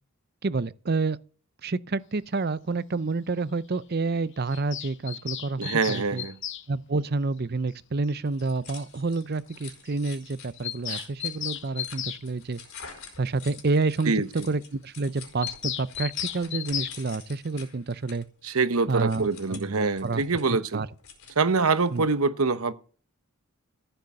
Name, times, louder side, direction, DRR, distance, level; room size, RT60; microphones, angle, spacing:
voice 1, 0.4-1.2 1.6-6.2 6.7-12.6 13.2-18.2 18.9-20.2 20.7-20.9 21.9-22.0, right 3 dB, 45° right, 0.6 m, -29 dB
Bird vocalization bird call bird song, 4.5-6.7 8.1-8.2 8.4-8.5 8.8-8.9 9.2-9.3 9.5-9.6 9.9-10.0 10.3-12.2 15.4-17.0, left 11 dB, 55° left, 0.9 m, -34 dB
voice 2, 5.6-6.4 10.9-11.0 14.0-14.3 18.4-20.8 21.4-22.7, right 4 dB, 75° right, 1.0 m, -25 dB
sound 1, 8.3-22.1, left 6 dB, 70° left, 4.7 m, -48 dB
14.5 x 8.0 x 7.1 m
head